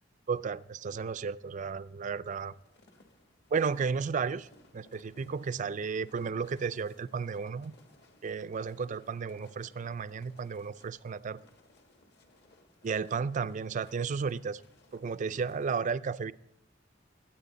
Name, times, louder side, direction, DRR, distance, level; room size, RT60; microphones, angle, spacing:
voice 1, 0.3-2.5 3.5-4.5 4.7-7.7 8.2-11.4 12.8-14.6 14.9-16.3, right 5 dB, 40° right, 15 dB, 0.3 m, -33 dB
sound 1, 2.3-15.8, left 2 dB, 55° left, 1.4 m, -62 dB
21.5 x 9.1 x 4.0 m, 0.85 s
head